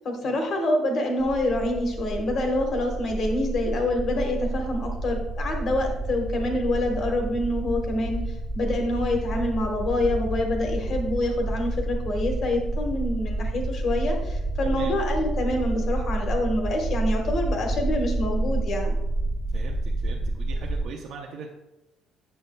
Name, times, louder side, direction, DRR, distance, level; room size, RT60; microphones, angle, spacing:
voice 1, 0.0-18.9, left 1 dB, 45° left, 3 dB, 1.2 m, -26 dB
sound 1, 1.2-20.9, right 2 dB, 10° right, 0.8 m, -29 dB
voice 2, 14.6-14.9 19.5-21.5, right 5 dB, 60° right, -1 dB, 0.6 m, -40 dB
8.1 x 6.5 x 2.2 m, 0.95 s
cardioid pair, 155°, 0 cm